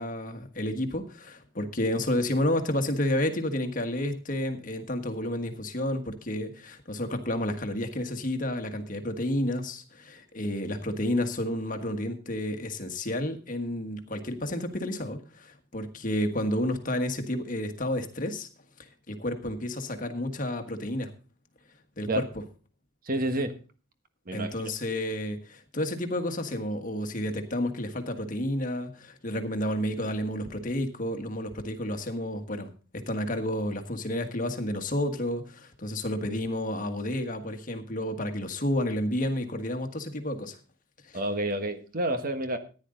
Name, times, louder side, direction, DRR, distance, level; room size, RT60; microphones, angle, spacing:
voice 1, 0.0-18.5 18.8-21.1 22.0-22.2 24.3-40.6 41.0-41.2, left 1 dB, 40° left, 6 dB, 1.6 m, -31 dB
voice 2, 23.0-23.5 24.3-24.5 41.1-42.6, right 1 dB, 45° right, 9 dB, 1.4 m, -29 dB
14.5 x 10.0 x 3.8 m, 0.36 s
head